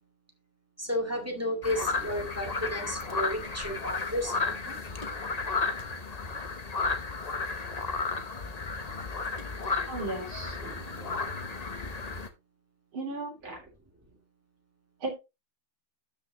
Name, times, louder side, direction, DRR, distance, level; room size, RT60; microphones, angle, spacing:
voice 1, 0.8-4.8 10.9-11.1, left 1 dB, 5° right, 1 dB, 1.8 m, -33 dB
sound 1, 1.6-12.3, left 4 dB, 55° left, 0.4 m, -33 dB
voice 2, 9.9-10.8 12.9-13.6 15.0-15.2, right 2 dB, 70° right, 0 dB, 4.1 m, -36 dB
12.5 x 5.7 x 3.0 m, 0.25 s
omnidirectional pair, 2.3 m